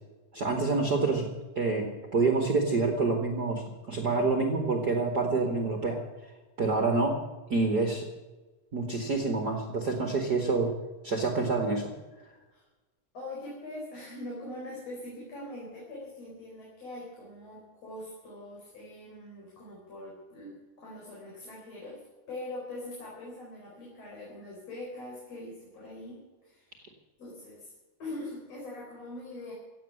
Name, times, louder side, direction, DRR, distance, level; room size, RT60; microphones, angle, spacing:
voice 1, 0.3-1.3 1.6-6.0 6.6-7.2 7.5-8.0 8.7-10.7 11.0-11.9, right 3 dB, 35° right, 3 dB, 1.9 m, -27 dB
voice 2, 13.1-26.8 27.2-27.7 28.0-29.5, left 1 dB, 50° left, -4 dB, 5.5 m, -42 dB
17.0 x 8.3 x 9.9 m, 1.2 s
omnidirectional pair, 3.8 m